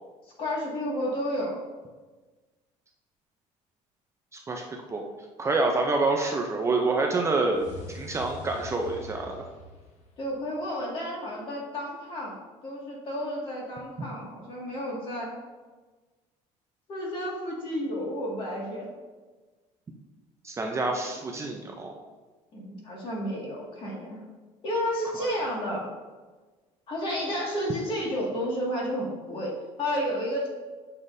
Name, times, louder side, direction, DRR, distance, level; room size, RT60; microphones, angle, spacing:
voice 1, 0.4-1.5 10.2-12.4 12.6-15.3 16.9-18.9 20.8-21.1 22.5-24.2 24.6-25.9 26.9-30.5, equal, 40° left, -3 dB, 2.0 m, -31 dB
voice 2, 4.3-4.6 4.9-5.0 5.4-9.4 20.4-21.9, right 3 dB, 20° right, 2 dB, 0.5 m, -27 dB
sound 1, 7.5-10.7, left 2 dB, 60° left, 1.1 m, -44 dB
7.7 x 5.6 x 2.7 m, 1.3 s
cardioid pair, 140°, 13 cm